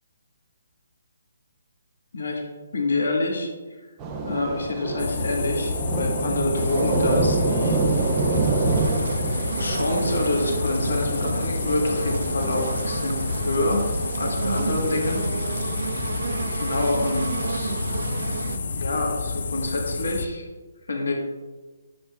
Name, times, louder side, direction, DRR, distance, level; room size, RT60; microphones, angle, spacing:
voice 1, 2.1-2.4 2.7-3.5 4.2-7.8 9.6-13.2 13.4-13.8 14.2-15.2 16.6-17.8 18.8-20.4 20.9-21.1, left 2 dB, 85° left, 1 dB, 1.2 m, -27 dB
Thunder / Rain, 4.0-16.8, right 3 dB, 20° right, 0.6 m, -28 dB
sound 1, 5.0-20.3, left 4 dB, 55° left, 0.5 m, -29 dB
sound 2, 6.5-18.6, right 4 dB, 70° right, 0.4 m, -32 dB
7.9 x 6.5 x 2.3 m, 1.3 s
hypercardioid pair, 165°, 0 cm